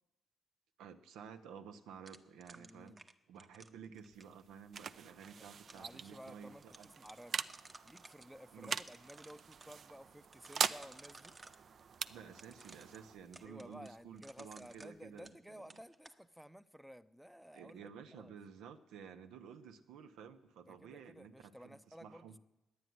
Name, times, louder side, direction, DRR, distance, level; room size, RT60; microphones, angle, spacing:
voice 1, 0.8-3.0 3.3-6.9 8.5-8.8 12.1-15.7 17.5-22.4, right 7 dB, 90° right, 8 dB, 1.0 m, -53 dB
sound 1, 2.1-4.4 5.2-5.9 6.3-6.4 6.6-8.3 8.6-9.8 10.3-11.6 12.3-15.4 15.7-16.2, right 2 dB, 25° right, 0.9 m, -58 dB
voice 2, 2.5-3.0 5.4-5.5 5.8-6.6 7.0-7.4 7.8-11.4 13.4-18.3 20.7-22.4, equal, ahead, 14 dB, 0.6 m, -54 dB
sound 2, 4.0-15.3, right 6 dB, 55° right, 0.5 m, -44 dB
11.5 x 9.6 x 9.4 m, 0.98 s
cardioid pair, 90°, 0 cm